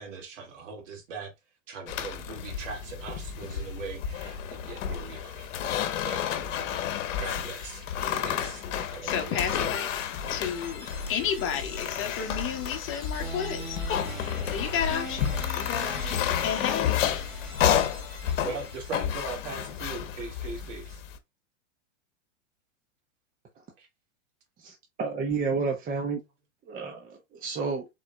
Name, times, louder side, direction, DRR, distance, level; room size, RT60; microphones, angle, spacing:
voice 1, 0.0-1.3 1.7-5.6 6.0-6.6 7.2-7.9 8.2-9.6 18.4-21.0 23.8-23.9, right 4 dB, 65° right, 2.4 m, -40 dB
sound 1, 1.9-21.2, left 9 dB, 65° left, 1.1 m, -31 dB
voice 2, 8.8-9.9 10.3-13.8 14.4-17.0, left 8 dB, 30° left, 1.4 m, -32 dB
sound 2, 9.8-19.7, equal, ahead, 3.0 m, -42 dB
voice 3, 24.6-26.2 26.7-27.9, right 4 dB, 20° right, 0.9 m, -31 dB
4.8 x 4.2 x 2.3 m
hypercardioid pair, 125°, 40 cm